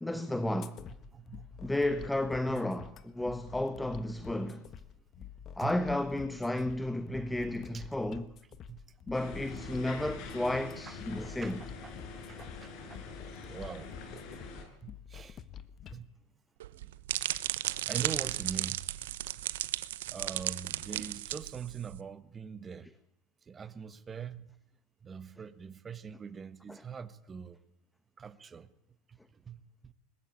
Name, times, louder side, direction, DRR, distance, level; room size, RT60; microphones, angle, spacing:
voice 1, 0.0-0.8 1.6-4.7 5.6-8.3 9.1-11.6, left 1 dB, 5° left, 1.1 m, -32 dB
sound 1, 0.6-16.0, left 8 dB, 35° left, 1.4 m, -49 dB
voice 2, 1.1-1.7 2.5-2.6 5.6-5.7 7.7-7.8 8.7-8.8 10.9-11.0 11.2-12.0 12.3-13.0 13.4-14.2 14.8-15.4 15.9-16.1 16.9-17.0 17.9-18.9 20.1-22.9 23.5-24.5 25.0-27.6 28.2-28.7 29.1-29.2 29.4-29.6 29.8-29.9, right 7 dB, 20° right, 1.4 m, -43 dB
sound 2, 9.1-14.6, left 3 dB, 50° left, 6.3 m, -45 dB
sound 3, 16.6-22.0, right 14 dB, 80° right, 1.0 m, -35 dB
21.0 x 19.5 x 8.5 m
supercardioid pair, 120°, 0 cm